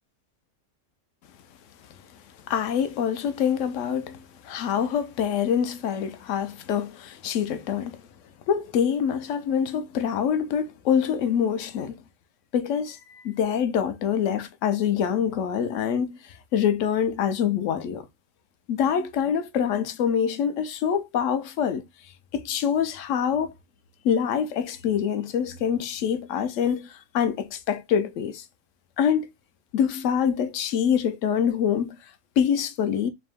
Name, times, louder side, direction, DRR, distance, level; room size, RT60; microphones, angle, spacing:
voice 1, 2.5-8.0 8.5-12.0 12.5-18.1 18.7-21.9 22.3-23.5 24.0-28.4 29.0-29.3 29.7-32.1 32.4-33.1, left 8 dB, 75° left, 0.9 m, -25 dB
3.7 x 2.7 x 3.4 m
omnidirectional pair, 1.3 m